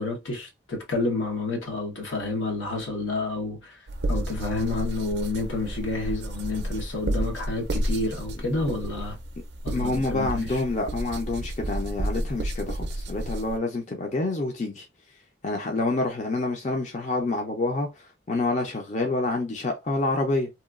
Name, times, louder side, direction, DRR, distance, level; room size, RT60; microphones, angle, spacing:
voice 1, 0.0-3.8 4.1-9.2 9.6-10.6, left 3 dB, 85° left, 1.0 m, -29 dB
sound 1, 3.9-13.6, right 1 dB, 60° right, 0.5 m, -31 dB
voice 2, 9.7-14.9 15.4-17.9 18.3-20.5, left 2 dB, 35° left, 0.5 m, -27 dB
2.9 x 2.3 x 2.4 m
head